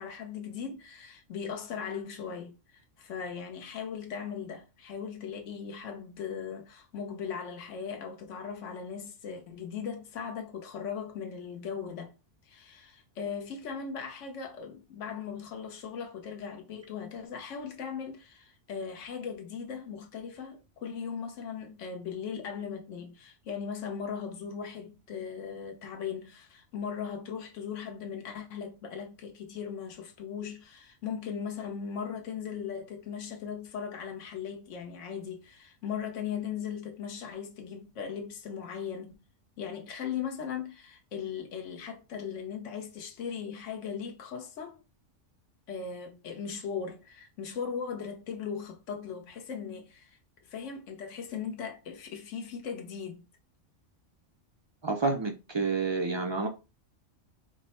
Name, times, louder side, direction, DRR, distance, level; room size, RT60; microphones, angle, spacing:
voice 1, 0.0-12.1 12.4-39.2 39.6-44.8 45.7-50.2 50.5-53.2, left 7 dB, 75° left, 1.2 m, -38 dB
voice 2, 54.8-56.5, right 3 dB, 40° right, 0.4 m, -29 dB
5.0 x 2.1 x 4.2 m
omnidirectional pair, 1.3 m